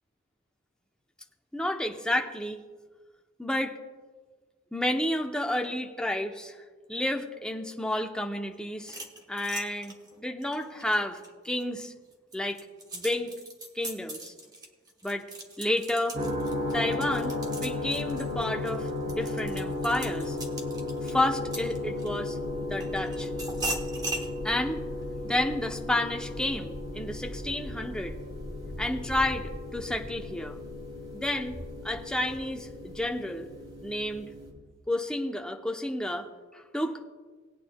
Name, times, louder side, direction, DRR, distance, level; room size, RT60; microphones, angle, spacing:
voice 1, 1.5-2.6 3.4-3.8 4.7-6.6 6.9-9.0 9.3-11.2 11.4-11.9 12.3-12.6 12.9-13.3 13.7-14.3 15.0-15.2 15.6-16.2 16.7-20.4 21.0-22.4 22.7-23.3 24.4-24.8 25.2-28.1 28.8-30.6 31.1-31.6 31.8-33.5 33.8-34.3 34.9-37.1, left 1 dB, 5° left, 3 dB, 0.7 m, -31 dB
sound 1, 8.8-11.6 12.1-22.3 22.8-24.3, right 2 dB, 20° right, 1.1 m, -39 dB
sound 2, 16.1-34.5, left 2 dB, 65° right, 2.5 m, -35 dB
19.5 x 8.9 x 2.2 m, 1.4 s
head